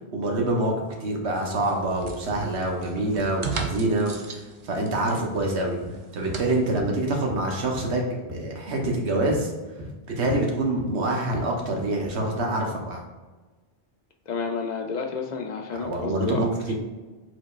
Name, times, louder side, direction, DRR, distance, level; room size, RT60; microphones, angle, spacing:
voice 1, 0.1-0.7 1.0-5.8 6.1-9.5 10.2-13.0 15.7-16.8, right 2 dB, 80° right, 1 dB, 1.2 m, -26 dB
sound 1, 1.3-6.7, right 4 dB, 45° right, 0.4 m, -37 dB
sound 2, 5.4-5.5 5.8-6.0 6.3-6.4 6.8-6.9 7.3-7.5 7.8-8.0 8.3-8.4 8.8-8.9 9.3-9.4 9.8-9.9 10.3-10.4 10.8-10.9 11.3-11.5 11.8-12.0 12.4-12.5, left 1 dB, 20° right, 0.8 m, -36 dB
voice 2, 14.3-16.5, left 5 dB, 55° left, 4 dB, 0.5 m, -30 dB
5.1 x 3.9 x 2.4 m, 1.3 s
omnidirectional pair, 1.1 m